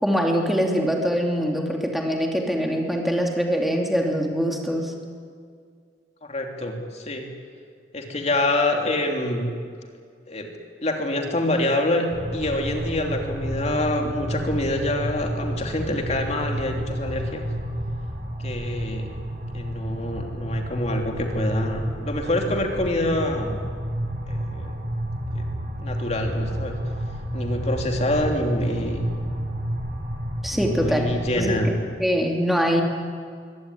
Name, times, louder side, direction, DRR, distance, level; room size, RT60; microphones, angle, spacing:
voice 1, 0.0-4.9 30.4-31.0 31.4-31.7 32.0-32.8, equal, ahead, 1 dB, 3.0 m, -23 dB
voice 2, 6.2-7.3 7.9-9.5 10.3-10.5 10.8-12.0 12.3-17.4 18.4-19.1 19.5-23.6 24.3-24.8 25.3-25.4 25.8-26.8 27.3-29.0 30.5-31.8, left 1 dB, 40° left, 2 dB, 3.2 m, -26 dB
sound 1, 12.1-31.7, equal, 50° right, 4.2 m, -30 dB
23.5 x 17.0 x 9.7 m, 2.1 s
head